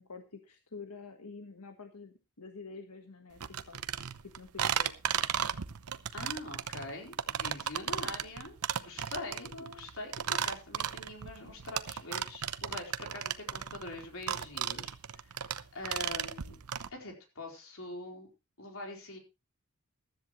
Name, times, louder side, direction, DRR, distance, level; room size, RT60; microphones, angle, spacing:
voice 1, 0.0-3.4 3.7-3.8 4.2-4.9 9.2-9.9, left 4 dB, 90° left, 5 dB, 1.4 m, -48 dB
sound 1, 3.4-16.9, right 9 dB, 80° right, 0.8 m, -35 dB
voice 2, 6.1-9.5 9.7-15.0 15.2-16.6 16.9-18.3 18.6-19.2, left 2 dB, 65° left, 2 dB, 4.3 m, -44 dB
15.0 x 13.0 x 3.1 m, 0.28 s
head